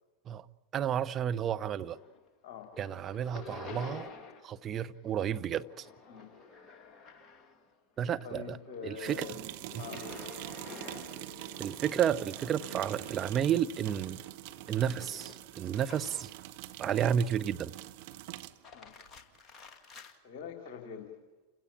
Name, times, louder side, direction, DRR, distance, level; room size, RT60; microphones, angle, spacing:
voice 1, 0.7-2.0 2.8-4.1 4.4-5.9 8.0-8.6 8.8-9.2 11.6-14.2 14.7-16.3 16.8-17.7, right 9 dB, 25° right, 0.8 m, -31 dB
sound 1, 1.6-2.3 2.6-4.6 4.9-7.7 8.1-16.4 16.9-17.6 18.4-20.2, left 4 dB, 25° left, 2.3 m, -50 dB
voice 2, 8.2-9.4 9.7-10.3 18.7-18.9 19.9-21.1, left 7 dB, 40° left, 3.4 m, -45 dB
sound 2, 9.0-18.6, right 15 dB, 50° right, 1.0 m, -44 dB
29.5 x 17.0 x 8.8 m
figure-of-eight pair, 90°, 0 cm